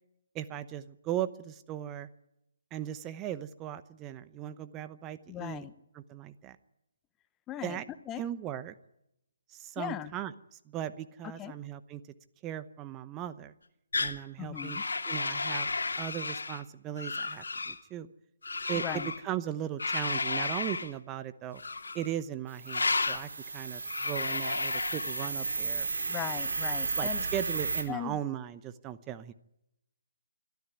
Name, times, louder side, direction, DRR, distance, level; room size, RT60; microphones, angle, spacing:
voice 1, 0.3-2.1 2.7-5.7 5.9-6.6 7.6-7.8 8.2-8.7 9.5-12.0 12.4-13.5 14.0-14.8 15.1-15.7 16.0-18.1 18.7-21.6 21.9-25.9 26.9-29.3, right 11 dB, 20° right, 13 dB, 0.9 m, -38 dB
voice 2, 5.3-5.7 7.5-7.8 8.1-8.2 9.8-10.1 11.4-11.5 14.4-14.8 18.7-19.1 26.1-27.2 27.9-28.2, left 11 dB, 15° left, 14 dB, 1.0 m, -38 dB
sound 1, 13.9-14.2 14.6-16.6 17.0-17.8 18.4-19.2 19.8-20.9 21.6-22.1 22.7-23.2 23.9-25.6, left 3 dB, 75° left, 2.4 m, -33 dB
sound 2, 22.5-27.8, right 4 dB, 70° right, 4.8 m, -34 dB
25.0 x 13.0 x 9.6 m, 0.85 s
figure-of-eight pair, 145°, 0 cm